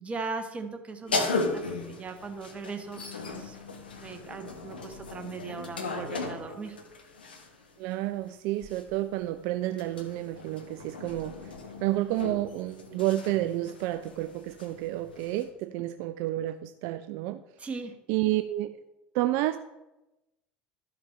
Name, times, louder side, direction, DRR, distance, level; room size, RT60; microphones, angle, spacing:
voice 1, 0.0-3.0 3.3-6.8 17.6-17.9, right 4 dB, 25° right, 6 dB, 1.2 m, -39 dB
sound 1, 1.1-7.6 8.6-15.5, left 3 dB, 85° left, 0.9 m, -37 dB
voice 2, 7.8-11.5 11.8-17.4 18.1-18.8 19.1-19.6, right 15 dB, 60° right, 10 dB, 0.3 m, -30 dB
13.0 x 5.8 x 3.2 m, 1.0 s
hypercardioid pair, 70°, 5 cm